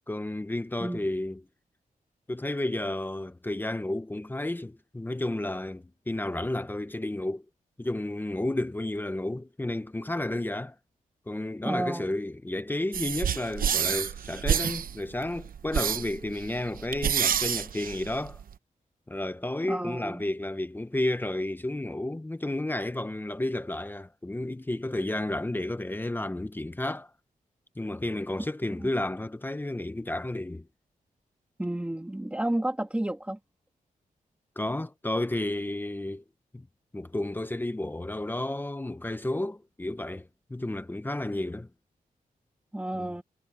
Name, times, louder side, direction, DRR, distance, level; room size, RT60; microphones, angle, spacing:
voice 1, 0.1-1.4 2.3-7.4 7.8-10.7 11.3-18.4 19.1-27.1 27.8-30.6 34.6-36.2 36.5-36.7 36.9-41.7 42.9-43.1, left 1 dB, 15° left, 0.9 m, -32 dB
voice 2, 11.6-12.1 19.6-20.2 28.8-28.9 31.6-33.4 42.7-43.2, right 1 dB, 10° right, 1.8 m, -31 dB
sound 1, 12.9-18.5, right 8 dB, 75° right, 0.9 m, -29 dB
wide cardioid pair, 105°, 15 cm